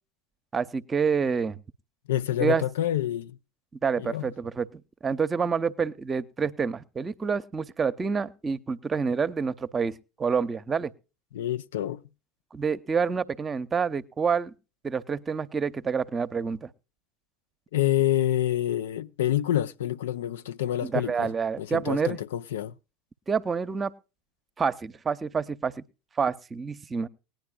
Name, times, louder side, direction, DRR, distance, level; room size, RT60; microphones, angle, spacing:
voice 1, 0.5-1.6 2.4-2.6 3.8-10.9 12.5-14.5 14.8-16.7 20.8-22.2 23.3-23.9 24.6-25.7 26.2-27.1, right 5 dB, 25° right, 0.8 m, -28 dB
voice 2, 2.1-3.3 4.0-4.3 11.3-12.0 17.7-21.3 21.6-22.7, left 12 dB, 70° left, 0.5 m, -27 dB
19.5 x 10.5 x 2.3 m
figure-of-eight pair, 75°, 0 cm